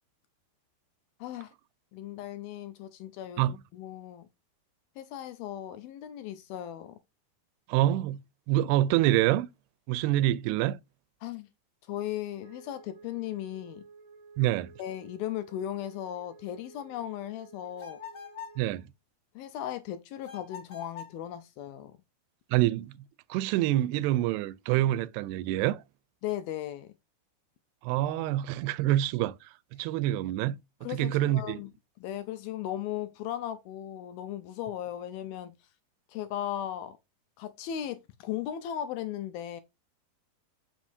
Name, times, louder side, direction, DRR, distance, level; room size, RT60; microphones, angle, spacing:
voice 1, 1.2-1.5 1.9-4.3 5.0-7.0 11.2-11.5 11.9-13.8 14.8-18.0 19.4-22.0 26.2-26.9 30.8-31.7 32.0-35.5 36.1-37.0 37.4-39.6, left 11 dB, 80° left, 2.3 m, -37 dB
voice 2, 7.7-8.2 8.5-9.5 9.9-10.8 14.4-14.7 18.6-18.8 22.5-22.9 23.3-25.8 27.8-30.6 30.9-31.6, right 14 dB, 85° right, 2.6 m, -26 dB
Wind instrument woodwind instrument, 12.4-18.8, right 4 dB, 45° right, 2.2 m, -53 dB
sound 1, 17.8-18.6 20.2-21.2, left 7 dB, 45° left, 1.6 m, -44 dB
7.2 x 6.1 x 2.6 m
omnidirectional pair, 4.7 m